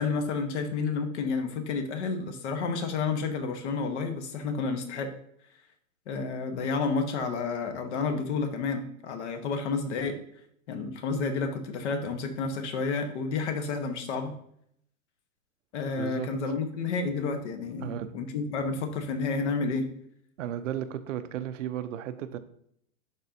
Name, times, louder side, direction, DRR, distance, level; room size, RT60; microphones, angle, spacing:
voice 1, 0.0-5.1 6.1-10.2 10.7-14.3 15.7-19.9, left 4 dB, 50° left, 7 dB, 1.3 m, -30 dB
voice 2, 16.0-16.5 17.8-18.2 20.4-22.4, right 10 dB, 60° right, 11 dB, 0.7 m, -35 dB
11.0 x 3.9 x 2.8 m, 0.69 s
hypercardioid pair, 145°, 43 cm